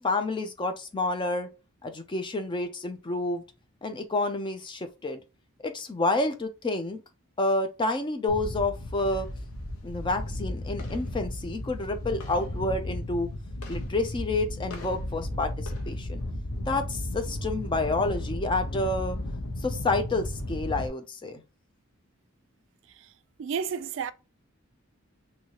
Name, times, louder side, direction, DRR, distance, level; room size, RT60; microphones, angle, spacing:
voice 1, 0.0-1.5 1.8-3.4 3.8-5.2 5.6-7.0 7.4-9.3 9.8-13.3 13.7-16.2 16.7-19.2 19.6-21.4, left 2 dB, 20° left, 0.4 m, -29 dB
sound 1, 8.3-20.9, left 1 dB, 85° left, 0.7 m, -34 dB
voice 2, 23.4-24.1, right 7 dB, 60° right, 0.3 m, -32 dB
2.9 x 2.7 x 2.8 m
head